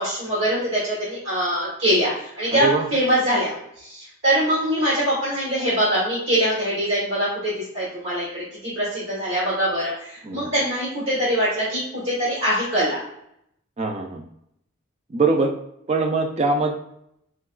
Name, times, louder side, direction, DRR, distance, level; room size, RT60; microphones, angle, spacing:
voice 1, 0.0-13.0, equal, 65° right, -8 dB, 1.3 m, -23 dB
voice 2, 2.5-2.9 10.2-10.5 13.8-14.2 15.1-15.5 15.9-16.7, right 3 dB, 30° right, 4 dB, 0.4 m, -22 dB
4.5 x 2.3 x 2.3 m, 0.75 s
head